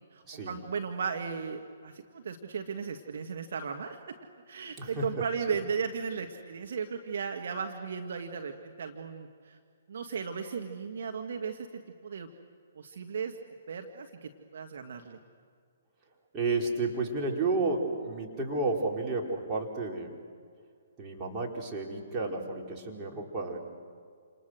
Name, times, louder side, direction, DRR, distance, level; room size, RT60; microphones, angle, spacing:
voice 1, 0.1-4.1 4.5-9.6 9.9-12.3 12.7-13.4 13.7-15.2, right 6 dB, 60° right, 4 dB, 1.7 m, -36 dB
voice 2, 16.3-20.2 21.0-23.6, right 3 dB, 20° right, -1 dB, 4.5 m, -31 dB
29.0 x 27.5 x 6.4 m, 2.1 s
figure-of-eight pair, 125°, 0 cm